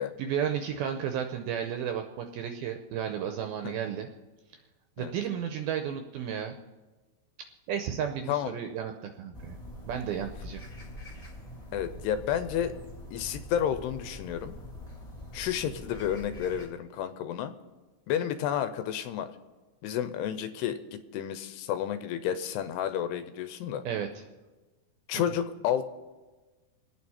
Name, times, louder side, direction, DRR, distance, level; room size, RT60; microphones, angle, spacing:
voice 1, 0.2-4.1 5.0-6.5 7.7-9.6 9.9-10.6 23.9-24.2 25.1-25.2, right 8 dB, 80° right, 6 dB, 2.2 m, -33 dB
sound 1, 9.3-16.7, left 1 dB, 25° left, 1.3 m, -44 dB
voice 2, 11.7-12.7 13.1-14.6 15.3-17.5 18.1-19.3 19.8-23.8 25.1-25.8, left 9 dB, 80° left, 10 dB, 2.7 m, -31 dB
27.5 x 9.4 x 4.2 m, 1.2 s
omnidirectional pair, 5.0 m